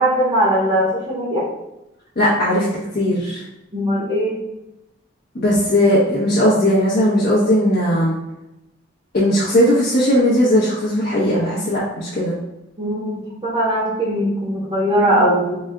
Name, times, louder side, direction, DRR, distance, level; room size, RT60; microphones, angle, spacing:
voice 1, 0.0-1.5 3.7-4.4 12.8-15.6, right 1 dB, 30° right, -6 dB, 0.8 m, -20 dB
voice 2, 2.2-2.7 2.9-3.4 5.3-8.2 9.1-12.4, equal, 50° left, -9 dB, 1.0 m, -17 dB
4.2 x 2.3 x 3.7 m, 0.91 s
head